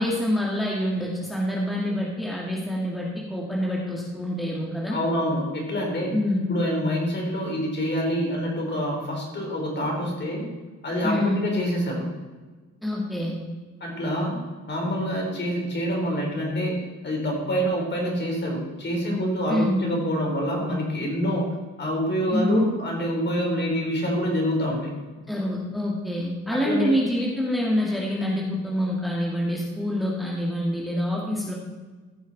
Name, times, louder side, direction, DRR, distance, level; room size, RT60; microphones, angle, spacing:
voice 1, 0.0-5.0 6.1-6.5 11.0-11.4 12.8-13.3 19.5-19.8 22.3-22.7 25.3-31.5, equal, ahead, -3 dB, 2.0 m, -26 dB
voice 2, 4.9-6.1 6.5-10.4 10.8-12.1 13.8-14.4 14.7-16.8 17.0-21.5 21.8-24.9 26.6-27.0, equal, 35° left, -1 dB, 3.7 m, -26 dB
15.0 x 6.3 x 4.1 m, 1.3 s
cardioid pair, 90°, 30 cm